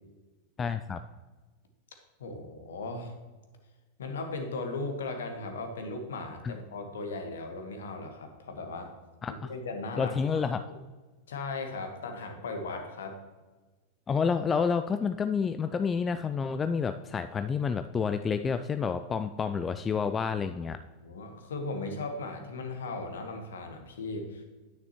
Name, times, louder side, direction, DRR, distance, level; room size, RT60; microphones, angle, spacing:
voice 1, 0.6-1.0 6.4-6.5 9.2-9.5 10.0-10.6 14.1-20.8, left 6 dB, 20° left, 9 dB, 0.3 m, -29 dB
voice 2, 2.2-3.1 4.0-8.9 9.3-10.2 11.3-13.2 21.0-24.4, left 3 dB, 65° left, 5 dB, 1.4 m, -37 dB
9.9 x 9.4 x 3.0 m, 1.3 s
figure-of-eight pair, 90°, 0 cm